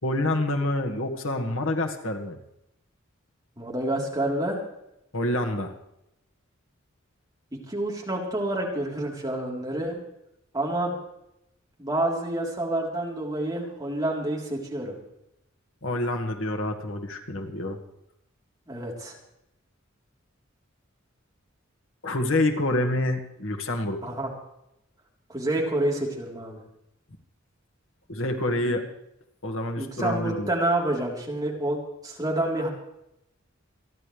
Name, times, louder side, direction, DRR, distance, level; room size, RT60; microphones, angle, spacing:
voice 1, 0.0-2.4 5.1-5.7 15.8-17.8 22.0-24.2 28.1-28.8 29.4-30.5, left 1 dB, 75° left, 4 dB, 2.0 m, -27 dB
voice 2, 3.6-4.6 7.5-10.0 10.5-11.0 11.8-15.0 18.7-19.2 24.0-24.3 25.3-26.6 28.7-28.8 29.8-32.7, right 1 dB, 20° right, -2 dB, 3.9 m, -28 dB
28.0 x 11.0 x 3.4 m, 0.81 s
head